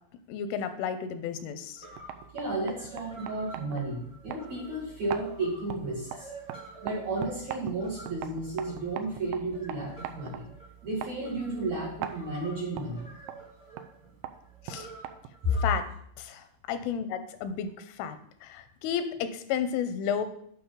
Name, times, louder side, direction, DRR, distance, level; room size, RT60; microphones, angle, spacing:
voice 1, 0.3-1.9 14.7-14.9 15.6-15.9 16.2-18.2 18.4-20.2, left 8 dB, 85° left, 10 dB, 3.1 m, -32 dB
sound 1, 1.4-1.5 1.7-15.6, right 2 dB, 5° right, 0.5 m, -49 dB
sound 2, 1.8-15.6, right 11 dB, 85° right, 3.0 m, -43 dB
voice 2, 2.3-6.3 6.8-10.5 10.8-13.1 15.4-15.6, right 1 dB, 60° right, -5 dB, 1.9 m, -33 dB
8.8 x 5.9 x 5.2 m, 0.68 s
omnidirectional pair, 5.6 m